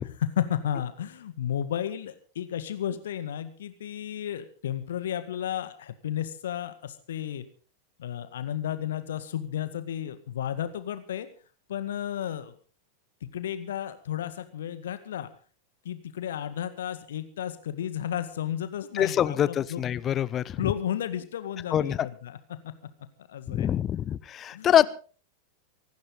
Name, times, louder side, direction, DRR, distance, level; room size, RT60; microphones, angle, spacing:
voice 1, 0.0-7.4 8.0-11.3 11.7-12.5 13.2-15.3 15.9-19.8 20.6-22.4 23.3-23.7 24.5-24.9, left 10 dB, 60° left, 11 dB, 1.8 m, -33 dB
voice 2, 18.9-20.6 21.7-22.1 23.5-24.8, left 10 dB, 30° left, 19 dB, 0.7 m, -25 dB
25.0 x 12.0 x 4.0 m, 0.38 s
figure-of-eight pair, 90°, 0 cm